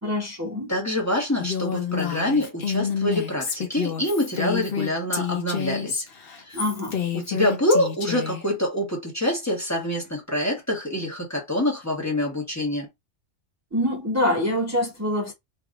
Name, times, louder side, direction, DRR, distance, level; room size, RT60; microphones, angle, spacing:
voice 1, 0.0-0.8 6.5-7.0 13.7-15.3, left 1 dB, 15° right, 0.8 m, -25 dB
voice 2, 0.7-6.0 6.4-6.6 7.1-12.9, left 1 dB, 15° left, 1.2 m, -26 dB
Female speech woman speaking, 1.4-8.4, left 7 dB, 55° left, 1.0 m, -28 dB
3.1 x 2.8 x 2.4 m
omnidirectional pair, 1.2 m